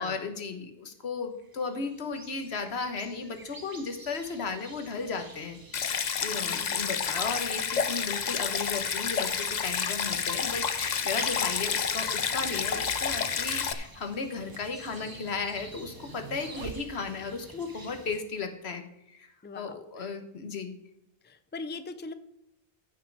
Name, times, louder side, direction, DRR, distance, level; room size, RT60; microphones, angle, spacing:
voice 1, 0.0-5.6 6.2-20.7, left 4 dB, 85° left, 7 dB, 1.5 m, -35 dB
sound 1, 1.4-18.2, right 2 dB, 20° right, 0.9 m, -49 dB
Stream, 5.7-13.7, left 6 dB, 50° left, 0.7 m, -29 dB
voice 2, 6.4-7.2 19.4-20.1 21.2-22.1, left 3 dB, 15° left, 11 dB, 0.5 m, -42 dB
sound 2, 11.8-17.5, right 6 dB, 60° right, 0.9 m, -47 dB
14.5 x 6.2 x 4.7 m, 0.83 s
omnidirectional pair, 1.1 m